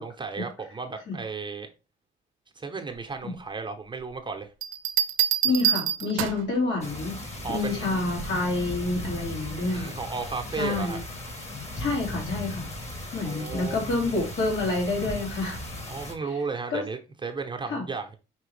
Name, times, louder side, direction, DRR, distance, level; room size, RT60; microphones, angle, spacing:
voice 1, 0.0-1.7 2.6-4.5 7.4-8.0 9.7-11.0 13.2-14.2 15.9-18.2, right 4 dB, 25° right, 0.8 m, -34 dB
sound 1, 4.6-6.6 8.2-8.5, right 10 dB, 85° right, 0.5 m, -26 dB
voice 2, 5.4-7.2 7.5-10.0 10.6-11.0 11.8-12.7 13.1-15.6 16.3-16.4 16.7-16.8 17.7-17.9, left 2 dB, 70° left, 2.2 m, -28 dB
sound 2, 6.8-16.1, left 1 dB, 35° left, 1.4 m, -37 dB
5.1 x 3.2 x 3.2 m
cardioid pair, 90°, 20 cm